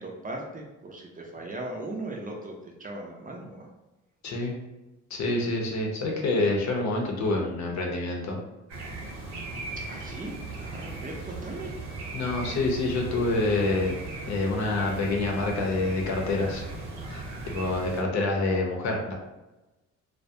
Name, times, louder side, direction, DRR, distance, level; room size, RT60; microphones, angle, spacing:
voice 1, 0.0-3.7 9.9-11.7, right 2 dB, 30° right, 0 dB, 0.5 m, -38 dB
voice 2, 4.2-4.5 5.1-8.4 12.1-14.0 14.2-16.6 17.1-19.1, left 2 dB, 65° left, 0 dB, 0.7 m, -27 dB
sound 1, 8.7-18.0, right 3 dB, 60° right, 0.8 m, -38 dB
2.3 x 2.1 x 2.7 m, 1.1 s
cardioid pair, 90°, 30 cm